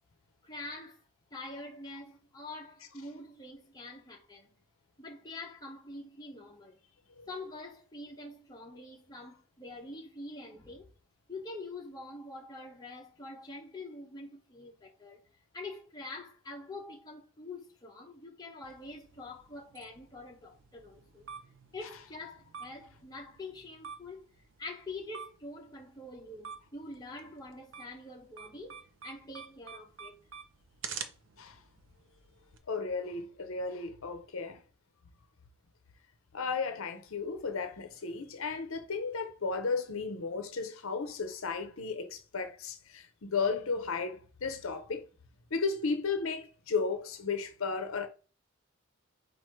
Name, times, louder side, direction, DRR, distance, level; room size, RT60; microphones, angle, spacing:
voice 1, 0.4-1.0 1.3-4.5 5.0-6.9 7.3-10.9 11.3-15.2 15.5-21.3 21.7-24.3 24.6-30.2, left 2 dB, 20° left, 0.9 m, -45 dB
sound 1, 18.6-32.6, right 6 dB, 60° right, 0.6 m, -49 dB
voice 2, 32.7-34.6 36.3-45.1 45.5-48.1, left 4 dB, 70° left, 0.7 m, -34 dB
4.5 x 2.6 x 4.5 m
head